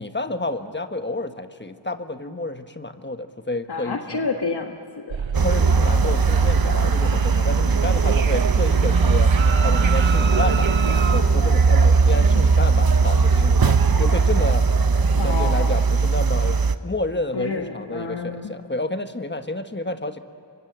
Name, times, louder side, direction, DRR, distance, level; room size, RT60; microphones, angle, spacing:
voice 1, 0.0-4.2 5.4-9.3 9.6-10.7 11.1-14.6 15.2-20.2, left 2 dB, 25° left, 8 dB, 1.3 m, -30 dB
voice 2, 3.7-5.3 15.2-15.8 17.3-18.5, left 4 dB, 60° left, 3 dB, 1.6 m, -29 dB
sound 1, 5.1-11.2, right 6 dB, 90° right, 1.0 m, -28 dB
sound 2, 5.3-16.8, right 4 dB, 50° right, 0.9 m, -18 dB
28.0 x 24.0 x 7.5 m, 2.6 s
wide cardioid pair, 80°, 45 cm